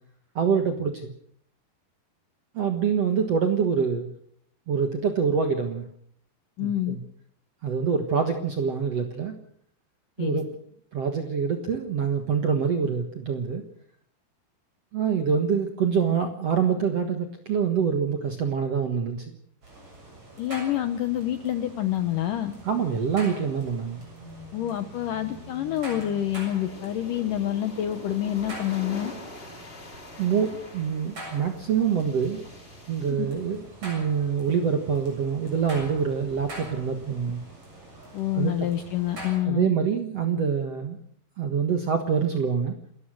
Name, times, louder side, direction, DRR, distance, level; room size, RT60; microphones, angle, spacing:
voice 1, 0.3-1.1 2.5-4.1 4.7-5.8 6.6-7.0 7.6-9.3 10.2-10.5 10.9-13.6 14.9-19.3 22.6-24.0 30.2-32.4 32.9-37.4 38.3-38.5 39.5-41.0 41.4-42.7, right 6 dB, 60° right, 5 dB, 1.7 m, -25 dB
voice 2, 6.6-7.0 10.2-10.4 20.4-22.5 24.5-29.1 33.2-33.3 38.1-39.7, left 12 dB, 75° left, 10 dB, 2.0 m, -27 dB
sound 1, 19.6-39.4, right 1 dB, 35° right, 8.0 m, -44 dB
sound 2, 24.9-33.1, left 1 dB, 25° left, 1.5 m, -45 dB
29.0 x 14.0 x 6.5 m, 0.66 s
omnidirectional pair, 4.9 m